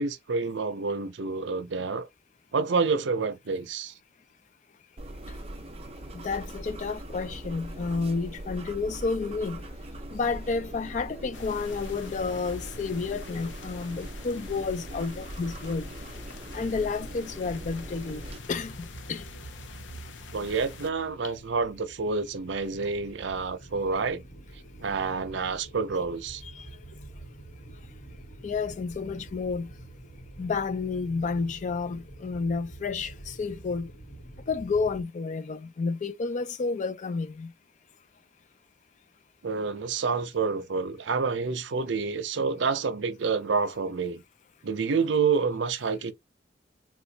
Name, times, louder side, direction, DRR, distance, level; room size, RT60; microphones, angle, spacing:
voice 1, 0.0-2.1 2.5-3.9 20.3-24.2 24.8-26.4 39.4-44.2 44.6-46.1, right 4 dB, 75° right, 0.6 m, -28 dB
sound 1, 5.0-18.4, right 1 dB, 30° right, 0.6 m, -41 dB
voice 2, 6.1-9.6 10.1-15.9 16.5-19.3 26.4-26.7 28.4-29.7 30.4-33.9 34.5-37.5, left 4 dB, 40° left, 0.3 m, -31 dB
sound 2, 11.3-20.9, left 5 dB, 80° left, 0.6 m, -46 dB
sound 3, 17.1-35.0, right 2 dB, 55° left, 1.1 m, -47 dB
4.2 x 2.2 x 2.8 m
head